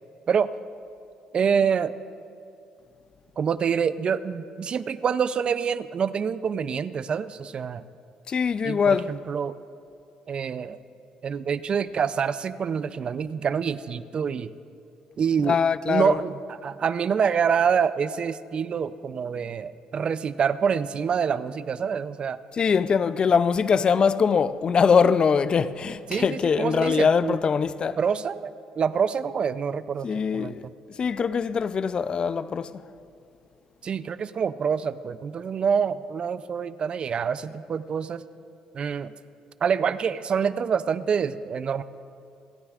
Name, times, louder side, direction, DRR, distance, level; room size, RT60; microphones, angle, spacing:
voice 1, 1.3-1.9 3.4-7.8 8.6-9.6 10.3-10.8 11.2-14.5 15.2-15.6 15.9-22.4 26.1-27.4 28.0-28.5 28.8-30.1 30.3-30.6 33.8-38.2 38.7-39.1 39.6-41.8, right 7 dB, 45° right, 0.4 m, -26 dB
voice 2, 8.3-9.1 15.4-16.2 22.6-28.0 30.0-30.6 31.0-32.8, left 6 dB, 40° left, 0.4 m, -22 dB
29.0 x 9.7 x 2.4 m
supercardioid pair, 75°, 2 cm